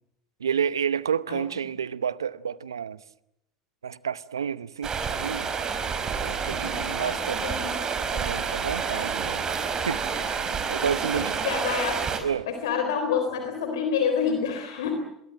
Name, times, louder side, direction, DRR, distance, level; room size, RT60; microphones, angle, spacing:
voice 1, 0.4-3.0 3.8-5.0 5.2-5.5 6.2-7.5 8.1-9.4 9.8-11.4 12.2-12.5, right 7 dB, 90° right, 0.8 m, -30 dB
Stream, 4.8-12.2, right 6 dB, 35° right, 5.5 m, -29 dB
voice 2, 6.5-7.7 11.1-12.1 12.5-14.9, left 6 dB, 75° left, 3.8 m, -28 dB
26.5 x 22.0 x 7.7 m
hypercardioid pair, 75°, 2 cm